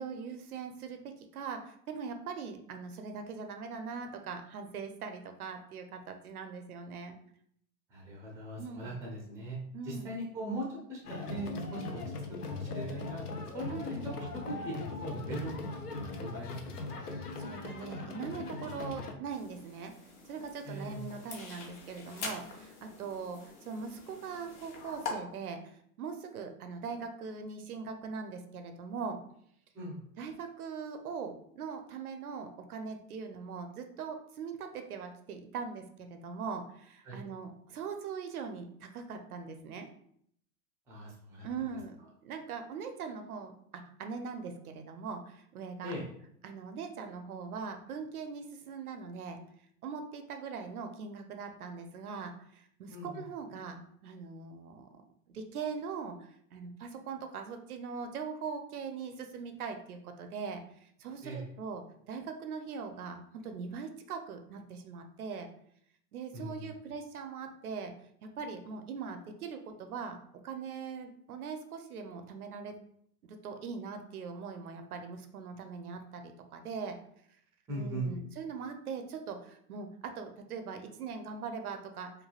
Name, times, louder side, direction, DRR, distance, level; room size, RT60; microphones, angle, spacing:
voice 1, 0.0-7.2 8.6-8.9 9.7-10.1 13.7-13.8 17.1-19.9 20.3-29.2 30.2-39.9 41.4-42.0 42.2-45.9 46.4-49.4 49.8-55.0 55.3-65.5 66.1-67.9 68.4-70.2 70.4-72.8 73.3-77.0 77.7-82.1, right 5 dB, 70° right, 6 dB, 0.6 m, -41 dB
voice 2, 7.9-9.6 9.8-12.0 12.5-14.0 14.4-16.9 20.6-21.0 29.7-30.0 37.0-37.2 40.9-41.5 45.8-46.0 52.9-53.3 61.2-61.4 66.3-66.7 77.7-78.1, right 1 dB, 5° right, -3 dB, 0.4 m, -40 dB
sound 1, 11.0-19.1, left 3 dB, 85° left, 0.6 m, -40 dB
sound 2, 19.3-25.1, left 4 dB, 45° left, 0.8 m, -45 dB
3.2 x 2.2 x 2.3 m, 0.67 s
figure-of-eight pair, 95°, 46 cm